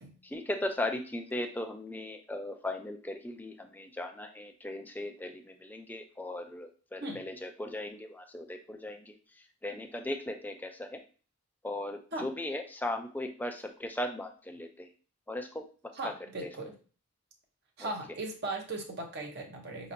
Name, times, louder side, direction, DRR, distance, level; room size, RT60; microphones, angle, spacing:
voice 1, 0.2-11.0 11.6-14.9 15.3-15.7 16.0-16.1 16.4-16.5 17.8-17.9, left 1 dB, 10° left, 5 dB, 0.4 m, -38 dB
voice 2, 16.0-16.7 17.8-19.9, right 2 dB, 50° right, 1 dB, 0.8 m, -38 dB
5.2 x 2.9 x 2.6 m, 0.38 s
head